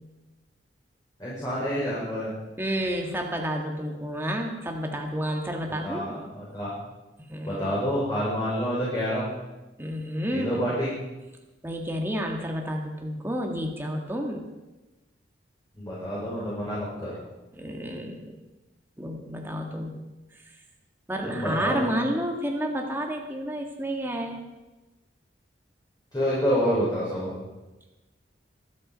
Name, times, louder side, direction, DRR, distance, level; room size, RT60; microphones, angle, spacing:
voice 1, 1.2-2.3 5.8-6.7 7.5-9.4 10.3-11.1 15.7-17.2 21.2-21.9 26.1-27.4, equal, 20° left, -8 dB, 5.1 m, -28 dB
voice 2, 2.6-6.2 7.3-7.6 9.8-10.6 11.6-14.5 17.5-18.3 19.0-19.9 20.3-20.4 21.1-24.4, equal, 15° right, 1 dB, 1.7 m, -30 dB
24.0 x 8.6 x 5.2 m, 1.1 s
head